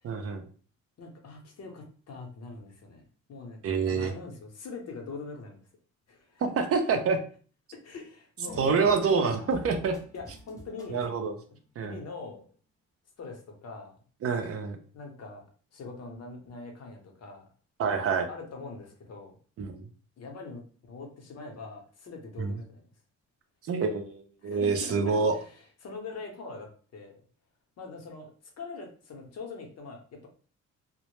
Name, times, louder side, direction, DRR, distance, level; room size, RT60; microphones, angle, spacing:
voice 1, 0.0-0.4 3.6-4.1 6.4-7.2 8.6-10.0 10.9-11.4 11.8-12.0 14.2-14.8 17.8-18.3 19.6-19.8 22.4-22.5 23.7-25.4, right 5 dB, 50° right, 6 dB, 0.5 m, -27 dB
voice 2, 1.0-3.0 3.3-5.6 6.1-6.4 7.8-8.6 9.4-9.5 10.1-11.1 11.5-12.4 13.2-14.0 14.9-15.4 15.7-17.4 18.3-19.3 20.2-22.9 24.4-27.1 27.8-30.3, left 3 dB, 55° left, 2 dB, 0.8 m, -43 dB
sound 1, 8.5-11.3, left 1 dB, 10° left, 0.7 m, -47 dB
2.1 x 2.0 x 3.0 m, 0.41 s
cardioid pair, 90°, 30 cm